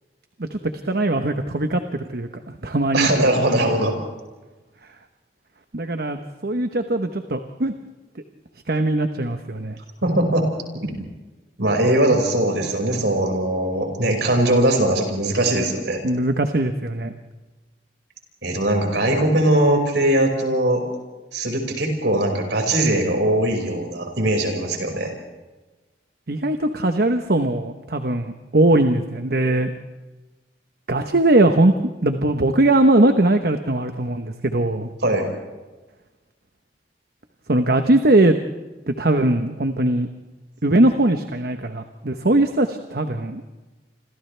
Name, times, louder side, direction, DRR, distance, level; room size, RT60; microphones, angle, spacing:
voice 1, 0.8-3.1 5.7-7.7 8.7-9.8 16.0-17.1 26.3-29.7 30.9-31.7 32.0-34.9 37.5-38.4 38.9-40.1 40.6-43.4, right 2 dB, 60° right, 7 dB, 1.1 m, -20 dB
voice 2, 2.9-4.0 10.0-10.5 10.8-10.9 11.6-16.0 18.4-20.8 21.3-25.1 35.0-35.3, right 1 dB, 75° right, 2 dB, 5.6 m, -20 dB
28.5 x 26.5 x 3.4 m, 1.2 s
head